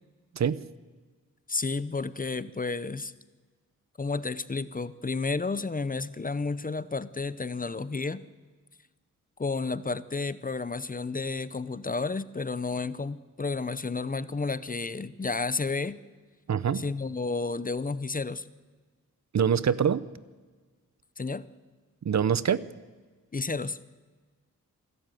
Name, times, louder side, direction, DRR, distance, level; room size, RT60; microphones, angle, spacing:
voice 1, 1.5-3.1 4.0-8.2 9.4-16.0 16.7-18.5 21.2-21.5 23.3-23.8, left 4 dB, 25° left, 16 dB, 0.7 m, -31 dB
voice 2, 16.5-16.8 19.3-20.0 22.0-22.6, right 7 dB, 55° right, 17 dB, 0.7 m, -24 dB
26.0 x 12.5 x 9.2 m, 1.4 s
wide cardioid pair, 90°, 33 cm